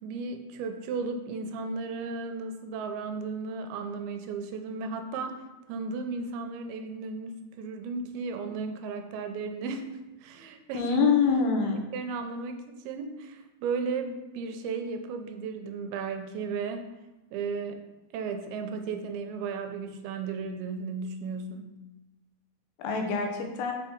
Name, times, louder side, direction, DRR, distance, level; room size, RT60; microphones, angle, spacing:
voice 1, 0.0-5.4 5.7-9.9 10.2-11.0 11.9-16.9 17.3-17.8 18.1-21.8, right 4 dB, 85° right, 6 dB, 2.5 m, -35 dB
voice 2, 10.7-11.8 22.8-23.7, left 5 dB, 80° left, 3 dB, 2.8 m, -25 dB
6.6 x 3.8 x 5.0 m, 1.0 s
omnidirectional pair, 4.4 m